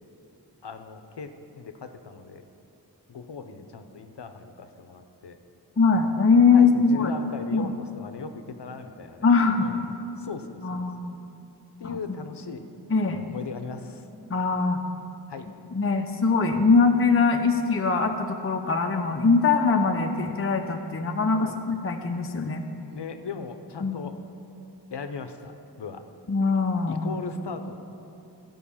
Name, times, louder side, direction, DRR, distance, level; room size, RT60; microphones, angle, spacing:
voice 1, 0.6-2.5 3.1-5.4 6.5-9.3 9.6-9.9 10.2-10.8 11.8-12.7 13.2-14.1 15.3-15.5 21.3-21.6 22.9-24.2 24.9-25.5 25.8-26.1 26.9-27.8, left 5 dB, 80° left, 8 dB, 0.8 m, -38 dB
voice 2, 5.8-7.1 7.5-7.7 9.2-9.7 10.6-11.1 11.8-12.0 12.9-13.2 14.3-14.8 15.7-22.7 23.8-24.1 26.3-27.1, left 4 dB, 35° left, 3 dB, 0.6 m, -22 dB
13.5 x 5.4 x 7.1 m, 2.8 s
wide cardioid pair, 70°, 41 cm